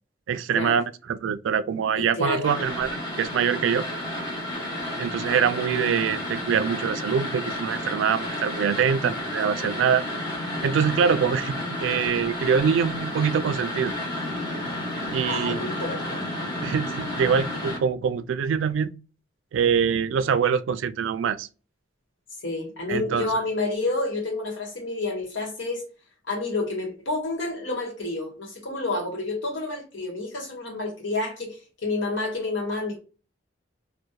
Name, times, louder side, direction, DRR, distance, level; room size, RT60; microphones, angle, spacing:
voice 1, 0.3-3.8 5.0-10.0 10.6-14.0 15.1-15.7 16.6-18.9 19.5-21.5 22.9-23.3, right 7 dB, 80° right, 0.3 m, -24 dB
voice 2, 2.0-2.6 15.2-16.2 22.4-25.8 26.3-33.0, left 2 dB, 85° left, 1.1 m, -29 dB
sound 1, 2.4-17.8, left 1 dB, 20° left, 0.9 m, -31 dB
2.8 x 2.1 x 2.2 m
head